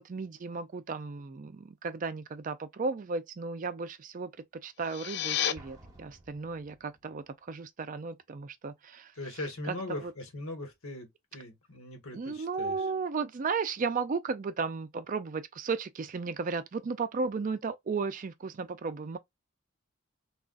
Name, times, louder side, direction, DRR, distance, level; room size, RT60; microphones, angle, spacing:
voice 1, 0.0-4.3 4.6-9.1 9.6-10.1 12.1-19.2, right 4 dB, 40° right, 0.4 m, -34 dB
sound 1, 4.7-5.5, left 10 dB, 55° left, 0.4 m, -31 dB
Explosion, 5.6-7.2, right 2 dB, 15° right, 1.0 m, -54 dB
voice 2, 9.2-12.7, left 1 dB, 80° left, 1.2 m, -40 dB
3.7 x 2.4 x 2.2 m
head